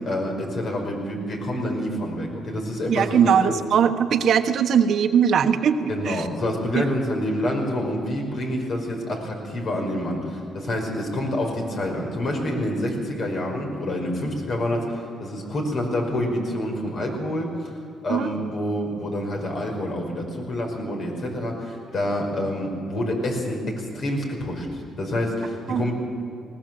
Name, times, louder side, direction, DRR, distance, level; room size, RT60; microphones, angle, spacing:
voice 1, 0.0-3.6 5.9-17.7 18.0-25.9, left 1 dB, 55° left, 1 dB, 5.2 m, -27 dB
voice 2, 2.9-6.3 6.7-6.9 18.1-18.3 25.7-25.8, right 8 dB, 65° right, 8 dB, 1.2 m, -20 dB
20.0 x 18.0 x 7.7 m, 2.6 s
cardioid pair, 90°, 0 cm